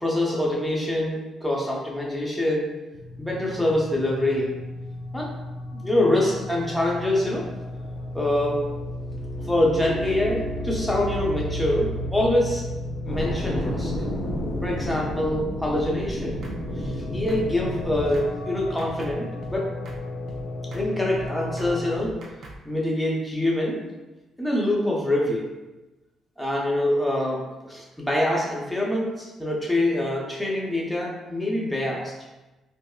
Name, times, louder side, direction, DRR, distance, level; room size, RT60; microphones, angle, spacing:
voice 1, 0.0-2.7 3.2-4.5 5.1-5.3 5.7-7.5 8.1-8.6 9.5-12.6 13.0-13.9 14.6-16.4 16.8-19.7 20.7-22.2 22.6-23.8 24.4-25.5 26.4-32.1, left 1 dB, 5° left, -4 dB, 0.9 m, -25 dB
sound 1, 2.9-22.0, left 1 dB, 55° left, 0.4 m, -34 dB
sound 2, 13.1-18.2, equal, 85° left, 1.1 m, -31 dB
sound 3, 16.0-16.1 16.4-16.6 16.8-17.0 17.3-17.4 17.7-17.8 18.1-18.3 18.6-19.1 19.4-19.6 19.9-20.0 20.3-20.4 20.7-20.9 21.1-21.3 21.6-21.7 22.0-22.6, right 2 dB, 60° right, 0.6 m, -41 dB
5.1 x 2.0 x 2.4 m, 1.1 s
cardioid pair, 90°, 0 cm